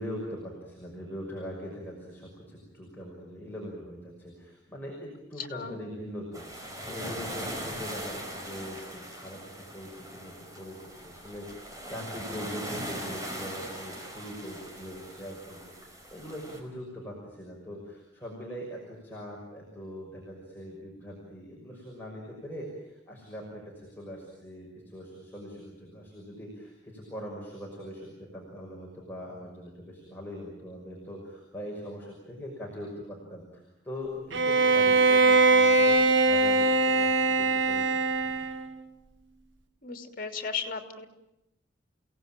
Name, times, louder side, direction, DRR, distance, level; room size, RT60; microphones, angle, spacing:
voice 1, 0.0-9.4 9.7-38.4, equal, 10° left, -3 dB, 6.1 m, -42 dB
voice 2, 5.4-5.8 39.8-41.1, left 5 dB, 50° left, 5 dB, 3.0 m, -35 dB
sound 1, 6.3-16.6, equal, 20° right, 4.9 m, -40 dB
Bowed string instrument, 34.3-38.7, right 3 dB, 80° right, 1.5 m, -22 dB
30.0 x 18.0 x 9.0 m, 0.91 s
head